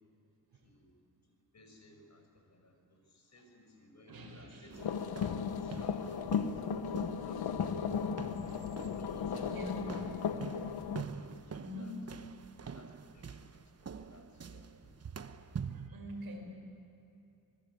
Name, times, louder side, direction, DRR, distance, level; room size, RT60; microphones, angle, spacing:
voice 1, 0.6-1.0 1.5-5.0 5.5-6.6 6.9-8.3 8.8-9.6 11.1-12.0 12.7-15.0, left 1 dB, 45° left, 3 dB, 6.2 m, -59 dB
voice 2, 4.1-4.7 5.8-5.9 9.5-9.8 11.5-11.9 15.7-16.5, equal, 75° right, 0 dB, 5.5 m, -45 dB
sound 1, 4.7-15.9, right 6 dB, 40° right, 1.1 m, -46 dB
sound 2, 4.8-11.0, left 6 dB, 90° left, 1.2 m, -35 dB
27.0 x 21.0 x 8.5 m, 2.8 s
cardioid pair, 90°, 37 cm